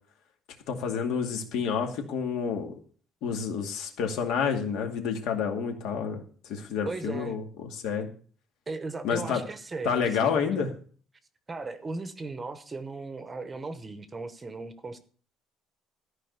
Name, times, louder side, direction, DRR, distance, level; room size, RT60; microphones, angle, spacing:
voice 1, 0.7-2.8 3.2-8.1 9.0-9.4 9.8-10.7, left 6 dB, 70° left, 4 dB, 2.3 m, -29 dB
voice 2, 6.9-7.4 8.7-10.7 11.5-15.0, right 3 dB, 15° right, 11 dB, 0.9 m, -37 dB
14.0 x 5.1 x 8.0 m, 0.43 s
cardioid pair, 175°, 0 cm